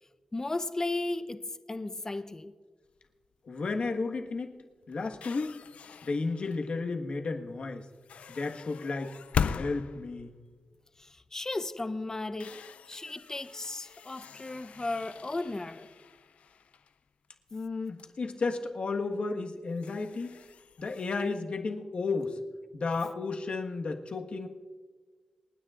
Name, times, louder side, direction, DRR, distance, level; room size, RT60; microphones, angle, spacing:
voice 1, 0.3-2.5 11.0-12.6 12.9-15.9, left 2 dB, 25° left, 0.7 m, -35 dB
sound 1, 2.8-3.3 3.8-4.0 4.3-6.9 7.9-11.3 11.7-11.8 12.2-17.7 18.0-18.1 19.0-19.1 19.5-21.4, left 7 dB, 90° left, 0.4 m, -40 dB
voice 2, 3.4-4.5 4.9-5.5 6.0-7.8 8.3-9.1 9.6-10.3 17.5-20.4 20.8-22.4 22.7-24.5, left 3 dB, 60° left, 1.4 m, -33 dB
28.0 x 9.6 x 2.5 m
wide cardioid pair, 95°, 2 cm